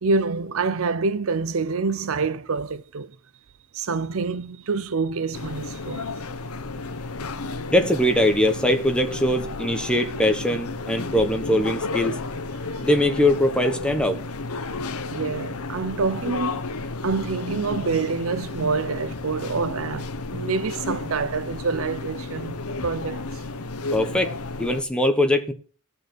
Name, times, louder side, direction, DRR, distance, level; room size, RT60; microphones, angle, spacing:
voice 1, 0.0-3.1 3.7-6.1 15.1-16.6 17.0-23.4, right 4 dB, 65° right, 0.6 m, -27 dB
sound 1, 5.3-24.8, left 3 dB, 85° left, 0.8 m, -32 dB
voice 2, 7.7-12.2 12.8-14.2 23.9-24.3 24.6-25.5, left 1 dB, 5° left, 1.1 m, -21 dB
16.0 x 5.5 x 6.0 m
head